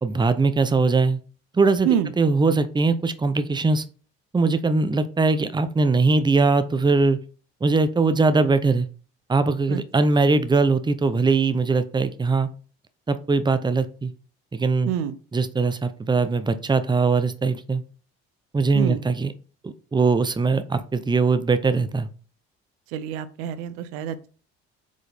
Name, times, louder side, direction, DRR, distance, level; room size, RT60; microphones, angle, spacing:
voice 1, 0.0-1.2 1.5-1.9 2.2-3.8 4.3-7.2 7.6-8.9 9.3-12.5 13.1-14.1 14.5-14.9 15.3-17.8 18.5-19.3 19.6-22.1, right 3 dB, 15° right, 11 dB, 0.7 m, -21 dB
voice 2, 9.7-10.1 14.9-15.1 18.7-19.0 22.9-24.3, right 10 dB, 85° right, 13 dB, 0.7 m, -27 dB
5.2 x 3.9 x 5.0 m, 0.38 s
supercardioid pair, 75°, 29 cm